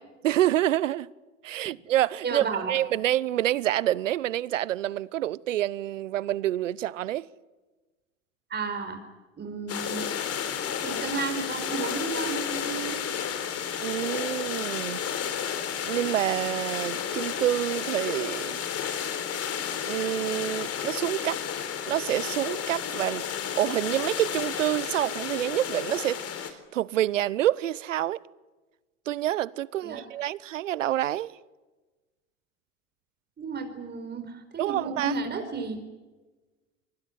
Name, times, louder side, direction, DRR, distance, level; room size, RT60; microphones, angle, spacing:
voice 1, 0.2-1.1 1.4-7.3 13.8-15.1 15.8-18.7 19.8-21.4 21.8-23.2 23.6-26.2 26.7-28.2 29.1-31.3 34.6-35.1, right 13 dB, 80° right, 0.9 m, -27 dB
voice 2, 2.2-2.7 8.5-9.0 9.4-10.1 10.8-13.0 29.8-30.0 33.4-35.8, right 4 dB, 25° right, 4.9 m, -32 dB
sound 1, 9.7-26.5, left 8 dB, 40° left, 4.2 m, -32 dB
26.0 x 19.5 x 9.5 m
hypercardioid pair, 85°, 37 cm